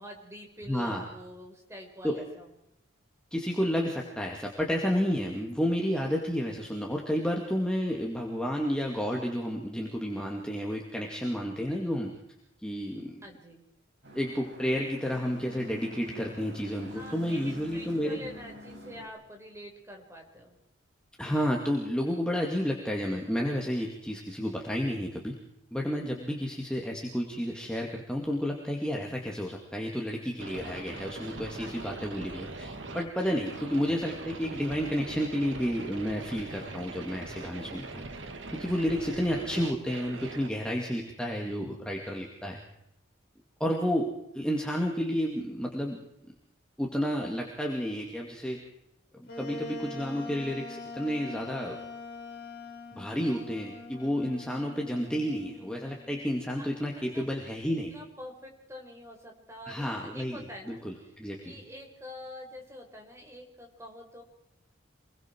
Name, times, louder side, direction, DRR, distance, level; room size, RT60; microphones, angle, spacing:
voice 1, 0.0-2.5 13.2-13.6 16.9-20.6 31.6-32.0 56.5-57.2 57.9-59.9 60.1-60.8 61.4-64.2, left 1 dB, 15° right, 1 dB, 4.8 m, -46 dB
voice 2, 0.7-1.1 2.0-2.2 3.3-12.2 12.6-13.2 14.1-18.3 21.2-25.4 25.7-38.0 38.5-42.6 43.6-46.0 46.8-48.6 49.1-51.8 52.9-57.9 59.7-61.6, equal, 5° left, -1 dB, 2.3 m, -31 dB
sound 1, 14.0-19.1, left 1 dB, 60° right, 5.8 m, -47 dB
sound 2, 30.4-40.5, right 3 dB, 75° right, 2.3 m, -42 dB
Wind instrument woodwind instrument, 49.3-56.7, left 2 dB, 50° left, 5.6 m, -44 dB
28.0 x 22.5 x 4.7 m, 0.83 s
head